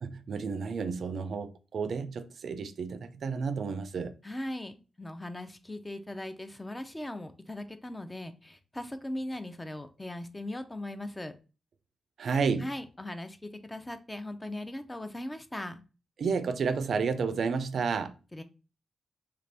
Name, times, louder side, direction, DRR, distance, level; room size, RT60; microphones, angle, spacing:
voice 1, 0.0-4.1 12.2-12.7 16.2-18.1, right 5 dB, 65° right, 0.3 m, -31 dB
voice 2, 4.2-11.3 12.6-15.8 18.3-18.4, left 1 dB, 15° left, 0.5 m, -39 dB
3.3 x 2.5 x 3.3 m
cardioid pair, 75°, 0 cm